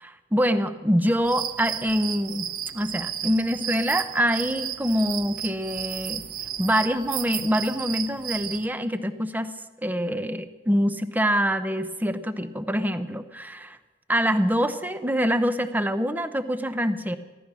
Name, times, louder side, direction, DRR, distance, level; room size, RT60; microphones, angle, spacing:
voice 1, 0.0-6.2 6.6-9.5 9.8-13.8 14.1-17.2, equal, 10° right, 11 dB, 0.7 m, -25 dB
sound 1, 1.2-8.7, right 10 dB, 50° right, 0.7 m, -33 dB
15.0 x 14.0 x 6.2 m, 1.2 s
head